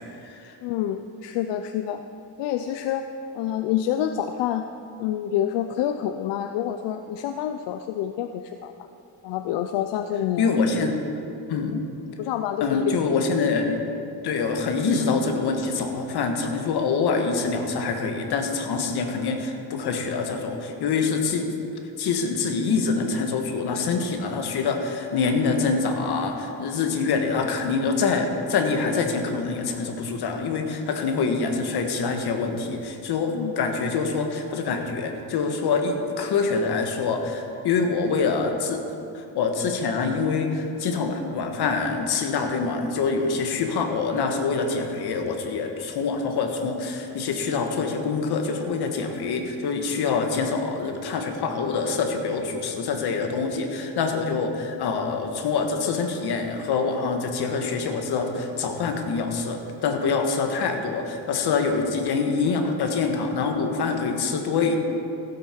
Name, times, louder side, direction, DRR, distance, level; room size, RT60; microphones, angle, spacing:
voice 1, 0.0-0.5 10.4-11.0 11.5-11.8 12.6-13.8 14.2-21.5 22.0-38.8 39.1-64.8, left 4 dB, 65° left, 4 dB, 1.5 m, -25 dB
voice 2, 0.6-2.0 2.4-3.1 3.3-4.7 5.0-8.7 9.2-10.5 11.7-11.8 12.2-12.9 33.3-33.5, left 10 dB, 85° left, 8 dB, 0.6 m, -27 dB
16.0 x 8.1 x 4.5 m, 2.7 s
cardioid pair, 100°, 41 cm